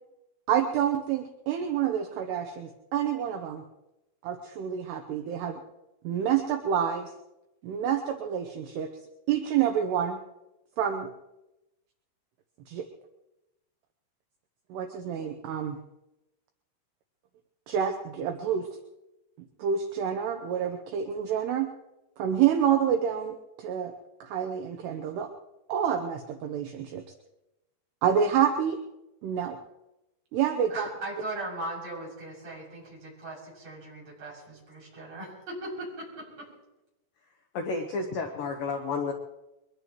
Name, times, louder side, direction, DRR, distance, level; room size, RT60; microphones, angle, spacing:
voice 1, 0.5-3.6 4.2-5.6 6.0-7.1 7.6-8.9 9.3-10.2 10.8-11.1 12.7-12.9 14.7-15.8 17.7-18.7 19.6-21.7 22.2-23.9 24.2-25.3 25.7-27.0 28.0-28.8 29.2-29.6 30.3-30.9, right 8 dB, 80° right, 5 dB, 2.5 m, -28 dB
voice 2, 30.7-36.5, right 2 dB, 35° right, -5 dB, 7.8 m, -39 dB
voice 3, 37.5-39.1, left 4 dB, 80° left, 3 dB, 2.0 m, -31 dB
23.0 x 20.5 x 3.0 m, 0.95 s
omnidirectional pair, 5.9 m